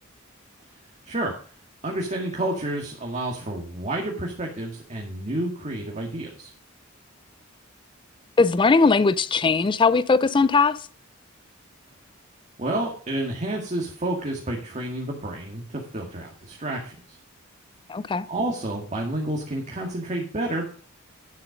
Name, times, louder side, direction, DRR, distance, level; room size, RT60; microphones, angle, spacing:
voice 1, 1.8-6.5 12.6-17.2 18.3-20.7, right 1 dB, 35° right, 1.9 m, -30 dB
voice 2, 8.4-10.9 17.9-18.3, left 4 dB, 25° left, 0.4 m, -19 dB
10.0 x 7.6 x 5.1 m
head